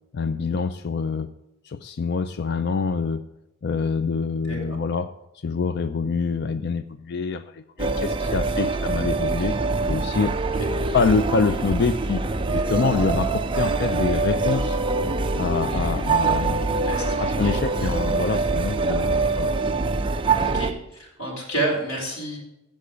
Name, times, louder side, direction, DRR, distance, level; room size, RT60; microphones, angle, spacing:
voice 1, 0.1-1.3 1.6-3.2 3.6-9.6 9.9-10.4 10.9-12.2 12.5-14.8 15.4-16.8 17.2-19.5 20.4-20.6, left 4 dB, 50° left, 11 dB, 0.4 m, -26 dB
voice 2, 4.5-4.8 10.6-10.7 15.7-15.8 16.9-17.9 20.4-22.4, right 1 dB, 80° left, -1 dB, 4.3 m, -30 dB
sound 1, 7.8-20.7, right 3 dB, 25° right, 0.5 m, -24 dB
15.0 x 5.1 x 5.0 m, 0.91 s
head